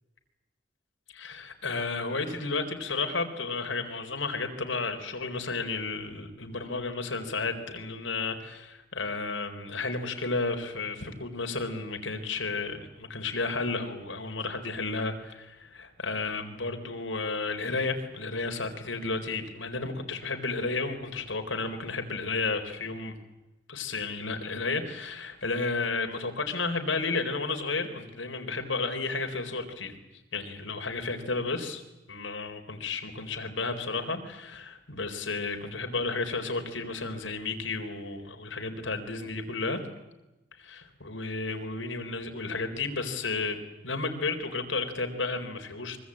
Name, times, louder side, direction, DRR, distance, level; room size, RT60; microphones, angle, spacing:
voice 1, 1.1-23.1 23.7-30.0 30.3-31.8 32.1-39.8 40.6-43.6 43.8-46.0, left 3 dB, 80° left, 5 dB, 3.9 m, -32 dB
24.0 x 24.0 x 8.7 m, 1.0 s
head